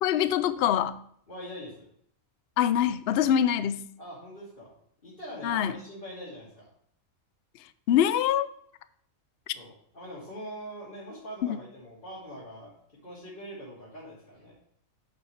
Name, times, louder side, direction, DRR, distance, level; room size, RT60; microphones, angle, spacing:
voice 1, 0.0-1.0 2.6-3.9 5.4-5.8 7.9-8.5, left 10 dB, 60° left, 13 dB, 0.7 m, -24 dB
voice 2, 1.3-1.9 4.0-4.8 5.0-6.7 9.5-12.7 13.0-14.6, equal, 40° left, -8 dB, 2.7 m, -43 dB
8.5 x 7.0 x 3.2 m, 0.67 s
omnidirectional pair, 1.4 m